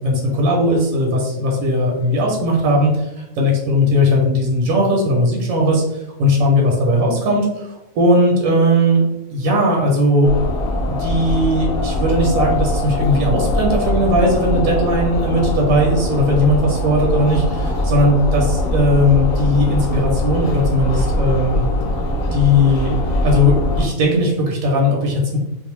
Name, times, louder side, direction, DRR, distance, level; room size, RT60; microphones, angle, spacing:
voice 1, 0.0-3.1 3.4-5.8 6.2-9.0 9.3-10.3 10.9-21.6 22.3-22.9 23.2-25.4, left 1 dB, 85° right, -1 dB, 1.1 m, -17 dB
sound 1, 10.2-23.9, left 1 dB, 80° left, 1.0 m, -21 dB
2.5 x 2.0 x 3.0 m, 0.90 s
omnidirectional pair, 1.4 m